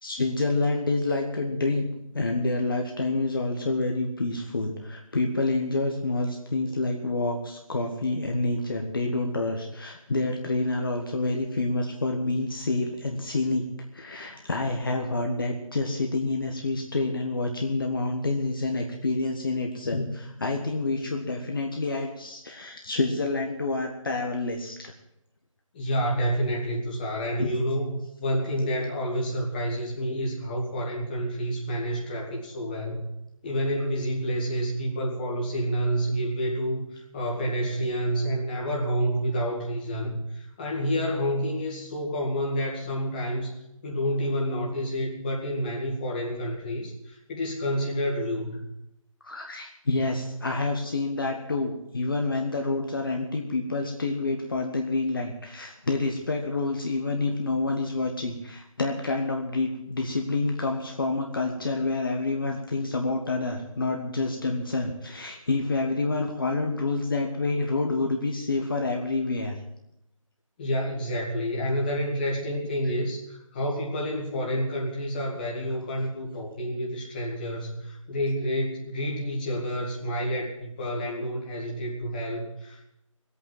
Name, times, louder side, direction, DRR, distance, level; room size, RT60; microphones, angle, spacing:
voice 1, 0.0-1.9 2.1-13.6 13.9-24.9 27.4-27.5 49.2-69.6, left 2 dB, 40° left, 2 dB, 1.5 m, -28 dB
voice 2, 25.7-33.1 33.4-43.6 43.8-48.6 70.6-82.8, equal, 15° left, -2 dB, 2.1 m, -29 dB
18.5 x 8.4 x 7.7 m, 0.82 s
figure-of-eight pair, 160°, 17 cm